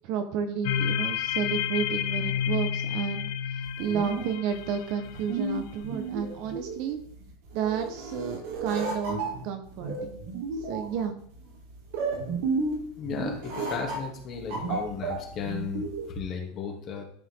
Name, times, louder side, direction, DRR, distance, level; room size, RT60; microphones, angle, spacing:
voice 1, 0.0-3.3 3.8-7.0 7.5-9.2 9.4-10.2 10.6-11.2, right 7 dB, 45° right, 7 dB, 1.2 m, -31 dB
sound 1, 0.6-5.5, left 9 dB, 60° left, 0.7 m, -30 dB
sound 2, 3.6-16.2, right 3 dB, 65° right, 3.9 m, -33 dB
voice 2, 13.0-17.0, left 6 dB, 30° left, 0 dB, 2.6 m, -35 dB
13.0 x 5.5 x 3.8 m, 0.62 s
supercardioid pair, 160°, 0 cm